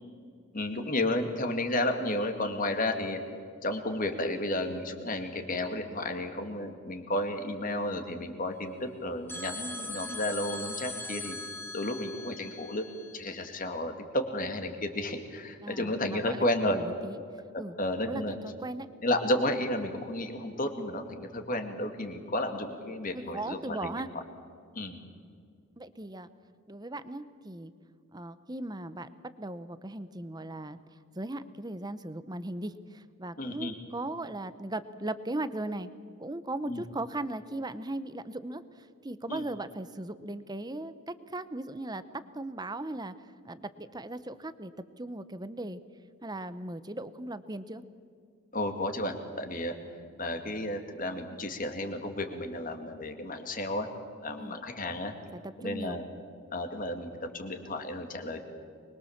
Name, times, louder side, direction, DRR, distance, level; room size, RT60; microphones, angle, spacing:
voice 1, 0.5-3.2 3.6-11.4 11.7-12.9 13.1-16.8 17.5-18.4 19.0-24.0 24.7-25.0 33.4-33.7 36.7-36.8 39.3-39.4 48.5-49.8 50.2-53.9 54.2-55.1 55.6-56.0 56.5-58.4, left 1 dB, 40° left, 6 dB, 2.2 m, -32 dB
sound 1, 9.3-13.6, left 2 dB, 10° left, 1.4 m, -41 dB
voice 2, 15.6-17.2 17.6-17.8 18.1-18.9 23.1-24.1 25.8-26.3 26.7-27.7 28.1-29.1 29.4-30.8 31.1-35.9 36.2-42.0 42.3-43.1 43.4-44.7 45.0-45.8 46.2-47.8 54.4-54.6 55.3-56.0, right 2 dB, 20° right, 13 dB, 0.8 m, -38 dB
24.5 x 22.0 x 7.3 m, 2.2 s
head